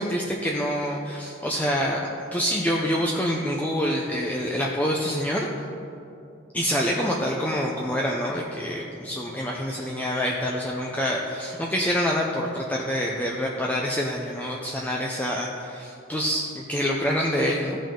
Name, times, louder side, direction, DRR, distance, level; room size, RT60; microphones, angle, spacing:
voice 1, 0.0-2.0 2.3-5.5 6.5-17.8, equal, 10° left, -2 dB, 0.5 m, -26 dB
15.0 x 5.3 x 3.8 m, 2.7 s
head